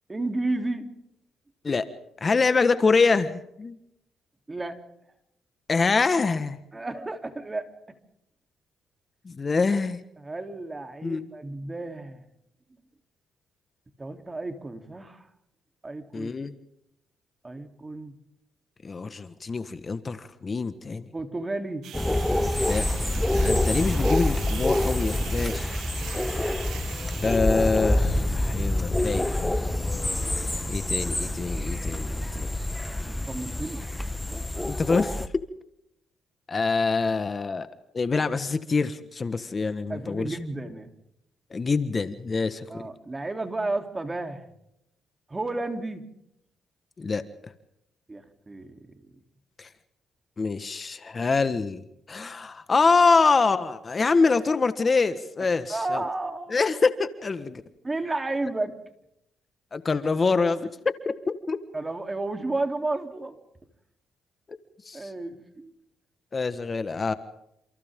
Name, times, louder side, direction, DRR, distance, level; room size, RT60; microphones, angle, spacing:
voice 1, 0.1-0.8 4.5-4.8 6.7-7.7 10.2-12.2 14.0-15.3 15.8-16.3 17.4-18.1 21.1-21.8 33.0-33.9 39.9-40.9 42.7-44.4 45.3-46.0 48.1-49.1 55.4-56.6 57.8-58.7 61.7-63.4 64.9-65.7, right 2 dB, 20° right, 7 dB, 3.4 m, -32 dB
voice 2, 2.2-3.8 5.7-6.6 9.2-10.0 11.0-11.2 16.1-16.6 18.8-21.1 22.7-22.9 23.3-25.7 27.2-29.5 30.7-32.5 34.7-35.2 36.5-37.7 37.9-40.4 41.5-42.8 47.0-47.5 49.6-49.7 50.4-51.8 52.1-56.0 56.5-57.6 59.7-60.7 61.0-61.6 64.8-65.1 66.3-67.1, left 4 dB, 35° left, 11 dB, 1.5 m, -25 dB
sound 1, 21.8-27.4, right 11 dB, 75° right, 1.2 m, -42 dB
sound 2, 21.9-35.3, left 1 dB, 10° left, 1.1 m, -26 dB
sound 3, 26.0-31.0, left 6 dB, 55° left, 2.6 m, -46 dB
29.5 x 28.5 x 3.8 m, 0.79 s
cardioid pair, 90°, 0 cm